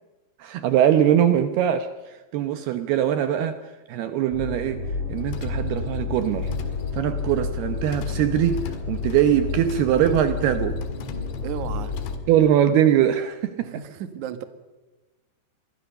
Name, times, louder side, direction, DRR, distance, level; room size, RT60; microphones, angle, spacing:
voice 1, 0.4-3.6 3.9-6.5 6.9-10.8 12.3-13.7, right 10 dB, 75° right, 9 dB, 2.7 m, -22 dB
sound 1, 4.3-12.6, left 3 dB, 35° left, 3.7 m, -31 dB
sound 2, 5.1-12.2, left 7 dB, 80° left, 4.1 m, -38 dB
voice 2, 11.4-12.0 13.6-14.4, right 8 dB, 55° right, 9 dB, 2.4 m, -33 dB
28.0 x 22.5 x 6.6 m, 1.2 s
omnidirectional pair, 5.1 m